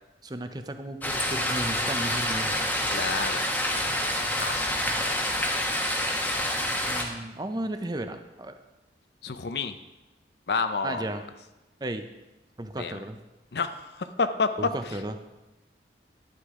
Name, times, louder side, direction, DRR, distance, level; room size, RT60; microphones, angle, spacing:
voice 1, 0.2-2.5 6.9-8.6 10.8-11.2 11.8-12.1 12.6-13.2 14.6-15.1, right 1 dB, 20° right, 8 dB, 0.6 m, -34 dB
sound 1, 1.0-7.0, left 1 dB, 10° left, 1.1 m, -27 dB
voice 2, 2.9-3.5 4.2-4.9 9.2-9.8 10.5-11.1 12.8-13.0 13.5-14.5 14.8-15.2, left 4 dB, 65° left, 10 dB, 0.6 m, -30 dB
11.5 x 9.7 x 3.7 m, 1.0 s
head